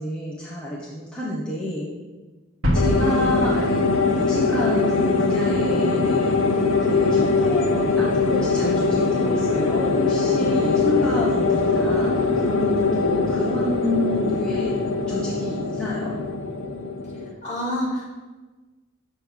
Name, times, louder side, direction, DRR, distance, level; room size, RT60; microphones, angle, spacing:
voice 1, 0.0-1.9 2.7-3.8 4.1-14.7 15.1-16.1, left 1 dB, 5° left, -7 dB, 0.9 m, -29 dB
sound 1, 2.6-4.7, equal, 75° right, 1.5 m, -26 dB
sound 2, 2.7-17.3, left 3 dB, 90° left, 0.7 m, -22 dB
voice 2, 17.4-18.1, left 1 dB, 35° left, -5 dB, 2.5 m, -28 dB
7.4 x 3.4 x 6.3 m, 1.3 s
head